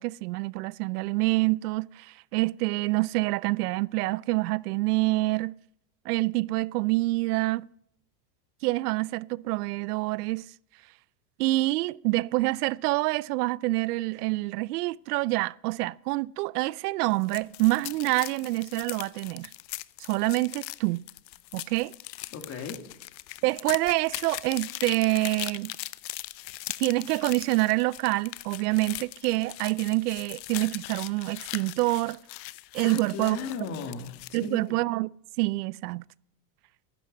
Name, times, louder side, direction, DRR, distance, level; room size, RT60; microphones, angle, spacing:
voice 1, 0.0-5.5 6.1-7.7 8.6-10.5 11.4-19.5 20.0-21.0 21.5-21.9 23.4-25.7 26.8-32.2 32.7-33.4 34.3-35.1 35.4-36.0, right 21 dB, 65° right, 0.5 m, -27 dB
sound 1, 17.1-34.5, left 18 dB, 85° left, 0.8 m, -40 dB
voice 2, 22.3-22.8 32.8-34.8, left 5 dB, 30° left, 2.1 m, -36 dB
15.5 x 11.5 x 5.2 m
supercardioid pair, 150°, 50 cm